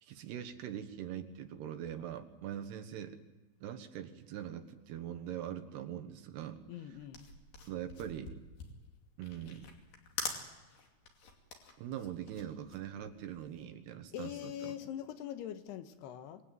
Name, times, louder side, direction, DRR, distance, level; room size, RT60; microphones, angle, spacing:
voice 1, 0.0-3.2 3.6-6.6 7.7-8.3 9.2-9.7 11.8-14.7, right 10 dB, 80° right, 7 dB, 3.4 m, -42 dB
voice 2, 6.7-7.3 14.1-16.4, left 10 dB, 80° left, 9 dB, 3.3 m, -42 dB
sound 1, 6.9-13.6, left 4 dB, 55° left, 4.1 m, -45 dB
26.0 x 18.5 x 9.3 m, 1.2 s
omnidirectional pair, 4.7 m